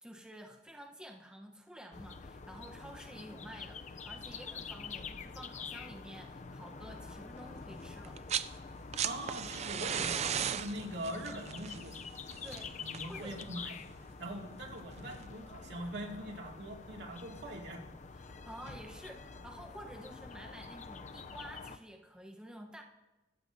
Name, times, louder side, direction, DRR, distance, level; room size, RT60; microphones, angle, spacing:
voice 1, 0.0-8.2 12.4-12.8 13.1-13.4 18.1-22.8, right 1 dB, 5° right, 2 dB, 1.0 m, -50 dB
Residential Air Distant Traffic, 1.9-21.8, left 5 dB, 40° left, 0.5 m, -47 dB
sound 1, 8.0-8.5 8.8-13.7 14.9-15.0, right 8 dB, 35° right, 0.4 m, -36 dB
voice 2, 9.0-12.0 12.7-13.7 14.0-17.8, right 1 dB, 65° right, 0 dB, 2.4 m, -42 dB
25.0 x 14.0 x 2.7 m, 1.1 s
head